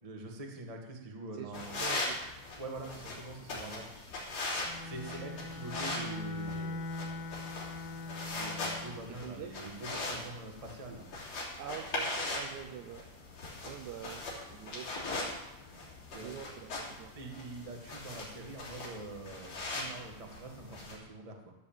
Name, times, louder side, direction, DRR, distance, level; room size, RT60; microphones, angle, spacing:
voice 1, 0.0-1.8 2.6-3.9 4.8-6.8 8.3-11.1 16.1-16.3 17.1-21.5, right 2 dB, 40° right, 1 dB, 0.4 m, -44 dB
voice 2, 1.4-2.2 9.2-9.5 11.6-13.1 13.6-14.2 14.5-15.3 16.2-17.1, right 10 dB, 80° right, 6 dB, 1.8 m, -45 dB
sound 1, 1.5-21.0, left 2 dB, 45° left, 4.0 m, -40 dB
Bowed string instrument, 4.6-9.1, left 2 dB, 75° left, 2.8 m, -41 dB
13.5 x 7.7 x 7.4 m, 1.0 s
omnidirectional pair, 4.1 m